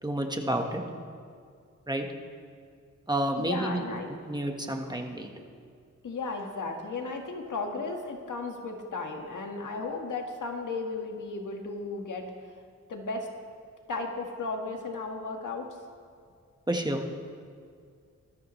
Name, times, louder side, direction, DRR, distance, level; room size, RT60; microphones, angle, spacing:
voice 1, 0.0-0.8 1.9-2.1 3.1-3.8 4.3-5.3 16.7-17.1, right 1 dB, 15° right, 3 dB, 1.4 m, -29 dB
voice 2, 3.4-4.1 4.9-5.0 6.0-12.3 12.9-13.3 13.9-15.7, left 3 dB, 75° left, 2 dB, 1.8 m, -35 dB
20.0 x 13.5 x 3.2 m, 2.2 s
cardioid pair, 75°, 31 cm